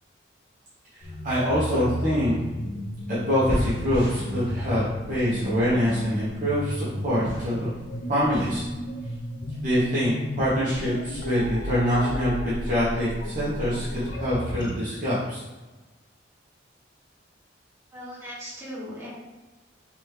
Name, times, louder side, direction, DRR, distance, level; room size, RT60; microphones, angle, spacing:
sound 1, 1.0-14.7, left 1 dB, 80° left, 0.5 m, -34 dB
voice 1, 1.2-2.4 3.1-7.7 8.1-8.6 9.6-15.4, equal, 45° right, -9 dB, 0.9 m, -25 dB
sound 2, 3.5-8.7, equal, 85° right, 1.0 m, -35 dB
voice 2, 17.9-19.1, equal, 15° right, -10 dB, 1.4 m, -38 dB
3.4 x 3.0 x 3.1 m, 1.2 s
head